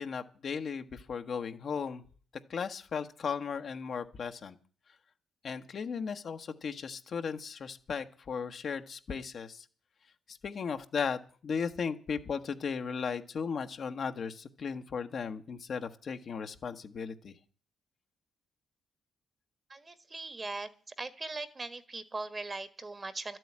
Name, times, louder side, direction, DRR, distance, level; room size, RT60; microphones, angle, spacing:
voice 1, 0.0-2.0 2.5-4.6 5.4-9.7 10.3-17.4, left 6 dB, 50° left, 7 dB, 1.2 m, -36 dB
voice 2, 19.7-20.7 21.0-23.4, right 3 dB, 25° right, 12 dB, 1.5 m, -40 dB
12.5 x 7.8 x 9.8 m, 0.42 s
cardioid pair, 90°, 0 cm